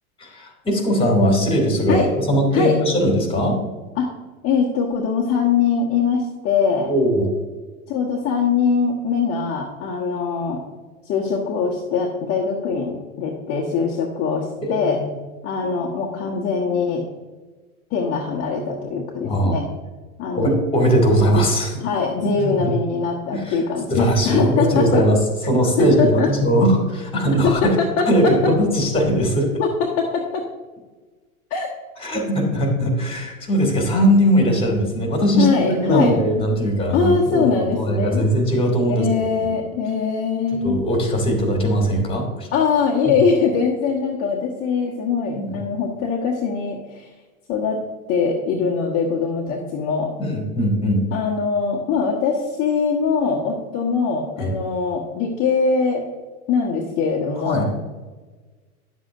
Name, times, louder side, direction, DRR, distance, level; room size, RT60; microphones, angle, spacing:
voice 1, 0.2-3.6 6.9-7.3 14.6-15.0 19.2-19.6 20.3-21.7 22.2-22.3 22.6-22.7 23.3-23.6 23.9-25.2 25.5-27.8 28.1-29.5 32.0-39.6 40.6-42.5 45.4-45.6 50.2-51.0 54.4-54.5 57.4-57.7, equal, 10° left, 2 dB, 2.3 m, -20 dB
voice 2, 4.4-6.9 7.9-10.6 11.0-15.0 15.4-17.0 17.9-19.7 20.2-20.6 21.8-25.1 25.8-26.3 27.4-27.7 28.0-28.3 29.6-30.4 31.5-31.7 35.4-36.1 36.9-38.2 38.9-40.8 42.5-47.1 47.5-47.8 48.1-50.1 51.1-56.0 56.5-57.8, left 5 dB, 30° left, -2 dB, 1.2 m, -22 dB
10.5 x 7.5 x 2.5 m, 1.3 s
hypercardioid pair, 100°, 44 cm